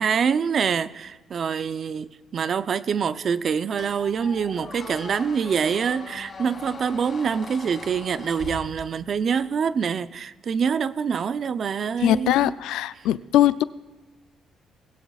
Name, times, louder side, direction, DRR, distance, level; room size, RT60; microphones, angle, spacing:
voice 1, 0.0-12.6, right 6 dB, 55° right, 14 dB, 0.5 m, -25 dB
Squeak, 3.8-9.3, left 4 dB, 40° left, 2.7 m, -40 dB
voice 2, 12.0-13.6, left 12 dB, 90° left, 16 dB, 0.3 m, -21 dB
20.0 x 17.5 x 2.4 m, 1.2 s
cardioid pair, 90°, 0 cm